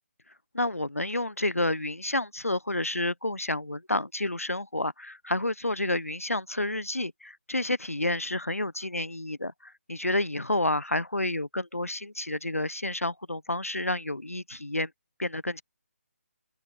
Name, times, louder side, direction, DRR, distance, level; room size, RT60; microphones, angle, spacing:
voice 1, 0.5-14.9 15.2-15.6, left 1 dB, 90° left, 1.1 m, -30 dB
open air
figure-of-eight pair, 150°, 7 cm